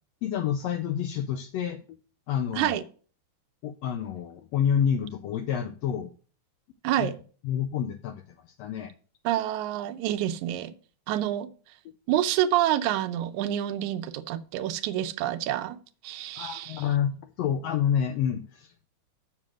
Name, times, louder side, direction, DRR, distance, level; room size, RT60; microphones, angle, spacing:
voice 1, 0.2-2.0 2.3-2.8 3.6-6.1 7.0-7.1 7.4-8.9 16.4-18.9, left 8 dB, 80° left, 1.5 m, -28 dB
voice 2, 9.3-10.7 11.1-11.5 12.1-15.8 16.0-16.8, right 12 dB, 75° right, 2.1 m, -27 dB
7.5 x 6.3 x 6.3 m
omnidirectional pair, 3.6 m